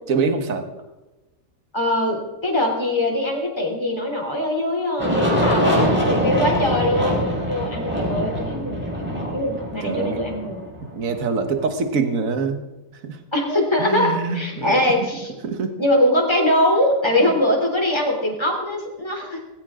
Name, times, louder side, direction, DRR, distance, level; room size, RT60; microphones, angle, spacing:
voice 1, 0.1-0.7 9.8-10.2 10.9-12.6 13.0-13.2 13.8-15.1 15.4-15.8, right 4 dB, 55° right, 7 dB, 1.7 m, -24 dB
voice 2, 1.7-7.2 7.5-10.6 13.3-15.3 15.8-19.4, left 1 dB, 15° left, 0 dB, 3.5 m, -22 dB
Aircraft, 5.0-11.7, equal, 5° right, 4.4 m, -23 dB
18.5 x 15.5 x 3.8 m, 1.1 s
omnidirectional pair, 1.8 m